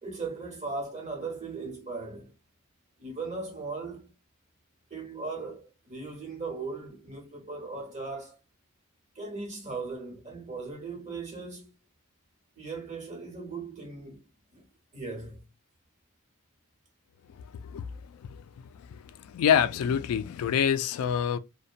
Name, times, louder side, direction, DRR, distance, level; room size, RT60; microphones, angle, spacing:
voice 1, 0.0-2.3 3.0-4.1 4.9-8.4 9.1-11.7 12.5-14.2 14.5-14.7 14.9-15.4, right 3 dB, 35° right, 1.1 m, -38 dB
voice 2, 19.3-21.4, left 8 dB, 80° left, 0.3 m, -25 dB
2.7 x 2.2 x 2.3 m
head